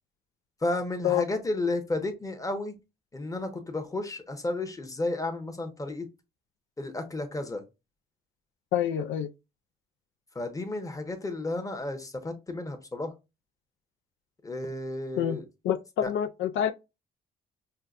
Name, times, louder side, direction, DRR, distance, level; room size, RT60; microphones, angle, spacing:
voice 1, 0.6-2.7 3.1-6.1 6.8-7.6 10.3-13.1 14.4-15.4 16.0-16.1, left 2 dB, 15° left, 0.9 m, -32 dB
voice 2, 8.7-9.3 15.2-15.4 15.6-16.7, left 10 dB, 80° left, 0.4 m, -27 dB
5.5 x 2.2 x 2.5 m
cardioid pair, 90°, 20 cm